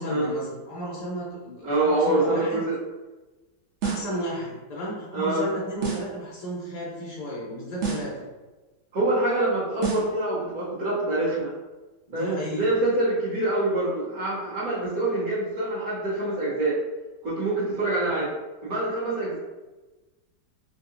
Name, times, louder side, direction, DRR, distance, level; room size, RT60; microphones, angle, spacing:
voice 1, 0.0-2.6 3.8-8.2 12.1-12.7, equal, 85° left, -6 dB, 0.3 m, -33 dB
voice 2, 1.6-2.8 5.1-5.5 8.9-11.5 12.1-16.8 17.2-18.3 18.6-19.4, right 2 dB, 55° right, -7 dB, 1.2 m, -25 dB
sound 1, 3.8-4.2 5.8-6.2 7.8-8.2 9.8-10.2, right 6 dB, 75° right, 0.6 m, -29 dB
3.9 x 2.4 x 2.5 m, 1.2 s
omnidirectional pair, 2.1 m